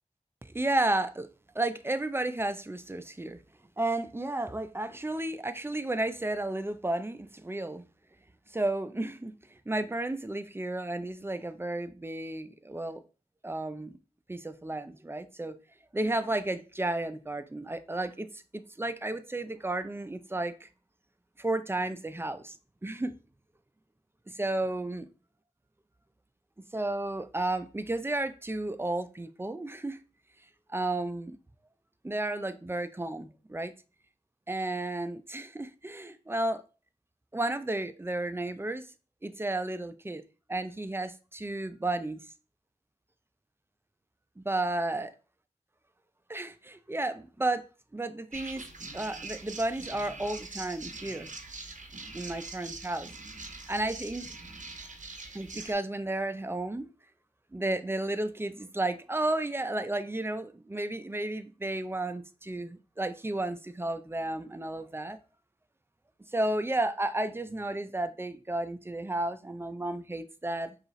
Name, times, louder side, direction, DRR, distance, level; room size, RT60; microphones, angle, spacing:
voice 1, 0.6-1.3 1.5-3.4 3.8-7.8 8.5-9.3 9.7-13.0 13.4-13.9 14.3-15.6 15.9-20.7 21.4-22.6 22.8-23.1 24.3-25.1 26.7-30.0 30.7-31.4 32.0-33.7 34.5-36.6 37.3-38.8 39.2-40.2 40.5-42.2 44.4-45.1 46.3-47.6 47.9-48.6 48.9-51.3 52.1-53.1 53.7-54.3 55.3-56.9 57.5-65.2 66.3-70.7, right 2 dB, 20° right, 0.4 m, -32 dB
sound 1, 48.3-55.7, right 3 dB, 70° right, 0.6 m, -43 dB
5.2 x 2.4 x 3.1 m
wide cardioid pair, 55°, 13 cm